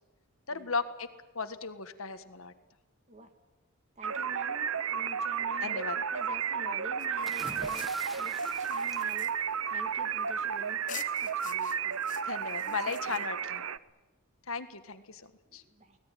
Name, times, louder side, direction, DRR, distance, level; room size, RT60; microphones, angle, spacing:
voice 1, 0.5-1.1 1.3-2.5 5.6-5.9 12.3-13.6 14.5-15.6, left 4 dB, 65° left, 10 dB, 1.6 m, -36 dB
voice 2, 4.0-7.9 8.2-9.3 9.7-12.0 12.7-12.8 13.1-13.2 15.5-16.0, right 1 dB, 30° right, 6 dB, 2.5 m, -48 dB
sound 1, 4.0-13.8, right 7 dB, 65° right, 0.8 m, -33 dB
sound 2, 7.0-10.4 10.9-13.6, left 9 dB, 35° left, 1.3 m, -48 dB
sound 3, 7.3-10.0 11.2-11.5, equal, ahead, 1.5 m, -47 dB
24.5 x 18.5 x 9.2 m, 1.1 s
head